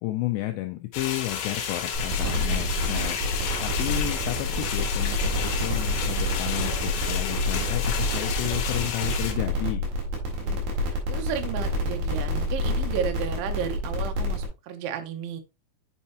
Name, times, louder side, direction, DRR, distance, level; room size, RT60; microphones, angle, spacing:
voice 1, 0.0-3.2 3.6-9.8, left 16 dB, 85° left, 5 dB, 2.5 m, -32 dB
sound 1, 0.9-9.3, left 8 dB, 70° left, 2.6 m, -32 dB
sound 2, 1.9-14.4, left 1 dB, 60° right, 3.7 m, -28 dB
voice 2, 2.2-3.4 10.4-15.4, right 8 dB, 80° right, 7 dB, 3.2 m, -34 dB
8.2 x 5.5 x 2.8 m, 0.25 s
omnidirectional pair, 5.6 m